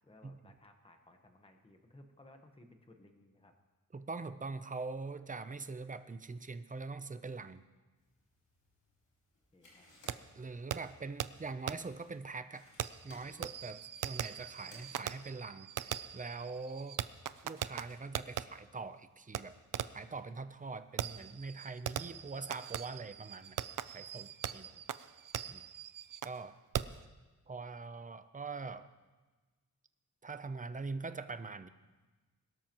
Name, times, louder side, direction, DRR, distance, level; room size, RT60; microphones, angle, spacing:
voice 1, 0.0-3.5 9.5-9.9 24.5-24.8, left 1 dB, 15° left, 5 dB, 1.1 m, -60 dB
voice 2, 3.9-7.6 10.4-12.7 13.0-17.0 17.4-19.5 19.9-23.6 23.9-24.7 25.5-25.6 26.2-26.6 27.5-28.9 30.2-31.7, right 4 dB, 25° right, 11 dB, 0.6 m, -43 dB
sound 1, 8.0-15.5, left 1 dB, 65° left, 5.0 m, -64 dB
Fireworks, 10.1-10.2 10.7-10.8 11.2-11.3 11.7-11.8 12.8-18.4 19.3-19.4 19.7-20.1 21.0-26.4 26.7-27.0, right 10 dB, 70° right, 0.5 m, -40 dB
22.0 x 12.5 x 3.0 m, 1.3 s
wide cardioid pair, 135°, 34 cm